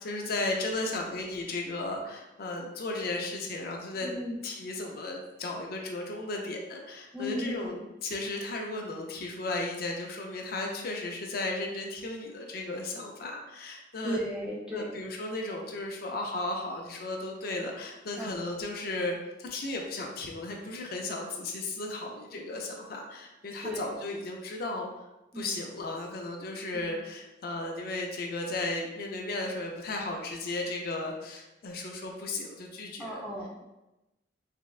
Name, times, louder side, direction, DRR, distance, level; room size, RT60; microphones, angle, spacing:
voice 1, 0.0-4.1 4.4-14.2 14.7-24.9 25.3-33.2, left 2 dB, 55° left, 1 dB, 0.4 m, -35 dB
voice 2, 4.0-4.4 7.1-7.8 14.0-14.9 18.2-18.3 23.6-24.0 25.3-25.5 26.7-26.9 33.0-33.8, equal, 5° right, -5 dB, 0.4 m, -35 dB
3.4 x 2.0 x 2.3 m, 0.98 s
head